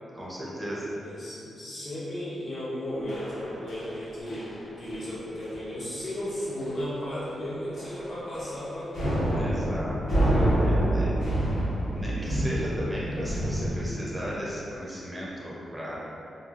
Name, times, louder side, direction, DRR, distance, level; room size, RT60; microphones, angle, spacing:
voice 1, 0.1-0.9 9.3-11.2 11.9-16.0, equal, 5° right, -7 dB, 0.6 m, -36 dB
voice 2, 0.7-9.4, equal, 45° left, -10 dB, 0.9 m, -35 dB
sound 1, 3.1-4.0 4.3-4.6 4.8-5.1 5.4-5.6 6.0-6.1 6.6-6.9 7.2-7.3 7.7-8.6 8.9-13.9, right 1 dB, 75° left, 1.1 m, -27 dB
2.7 x 2.6 x 2.4 m, 2.7 s
wide cardioid pair, 130°, 0 cm